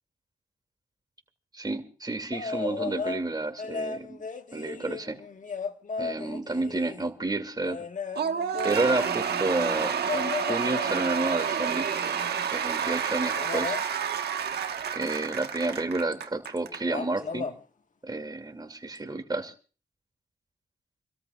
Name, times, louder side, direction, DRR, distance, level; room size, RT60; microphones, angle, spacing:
voice 1, 1.5-4.3 4.5-5.2 6.0-7.8 8.6-12.0 12.5-13.8 14.9-17.5 18.0-19.5, right 2 dB, 25° right, 7 dB, 2.4 m, -30 dB
sound 1, 2.3-3.2 3.6-7.1 7.6-12.5 13.4-13.9 15.7-15.8 16.1-16.6 16.8-17.6 18.9-19.0, left 4 dB, 50° left, 1.4 m, -36 dB
Cheering / Applause / Crowd, 8.1-16.8, right 7 dB, 80° right, 1.3 m, -29 dB
29.5 x 13.5 x 2.4 m, 0.38 s
cardioid pair, 65°, 17 cm